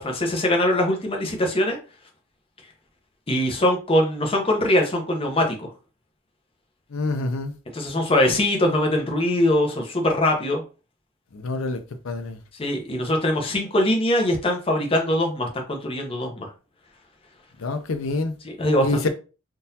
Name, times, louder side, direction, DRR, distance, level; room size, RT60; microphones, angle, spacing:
voice 1, 0.0-1.8 3.3-5.7 7.7-10.6 12.6-16.5 18.4-19.1, left 1 dB, 30° left, 0.8 m, -22 dB
voice 2, 6.9-7.5 11.3-12.4 17.6-18.3 18.8-19.1, left 3 dB, 85° left, 0.6 m, -26 dB
3.8 x 2.6 x 2.7 m
head